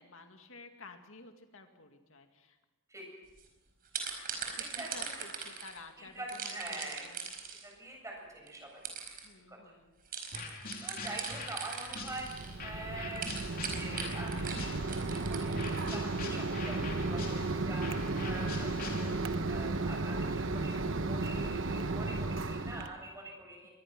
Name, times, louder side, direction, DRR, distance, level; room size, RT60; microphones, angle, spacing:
voice 1, 0.0-2.6 4.5-7.3 9.2-9.9, left 3 dB, 75° left, 5 dB, 2.2 m, -52 dB
sound 1, 3.3-3.4 3.9-5.8 6.3-7.7 8.5-8.6 8.8-9.3 10.1-12.6 13.1-16.0, right 6 dB, 45° right, 4.7 m, -40 dB
voice 2, 4.6-5.2 6.0-7.1 7.6-8.8 9.5-9.6 10.8-12.3 12.6-13.3 13.7-23.7, right 2 dB, 15° right, 0 dB, 7.6 m, -45 dB
sound 2, 10.3-15.1 15.5-19.5, left 3 dB, 45° left, 3.2 m, -44 dB
Mechanisms, 11.9-22.9, right 3 dB, 65° right, 1.1 m, -34 dB
24.0 x 20.0 x 6.1 m, 1.1 s
head